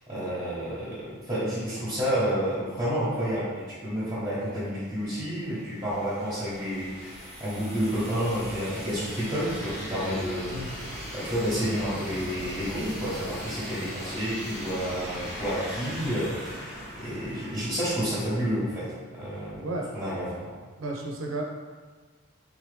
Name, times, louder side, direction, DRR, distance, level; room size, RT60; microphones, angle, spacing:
voice 1, 0.1-18.9 19.1-19.7 19.9-20.5, equal, 15° right, -11 dB, 1.0 m, -30 dB
sound 1, 5.0-18.7, equal, 15° left, 1.0 m, -39 dB
voice 2, 20.8-21.4, right 2 dB, 75° right, 0 dB, 0.6 m, -32 dB
3.6 x 3.1 x 3.3 m, 1.5 s
head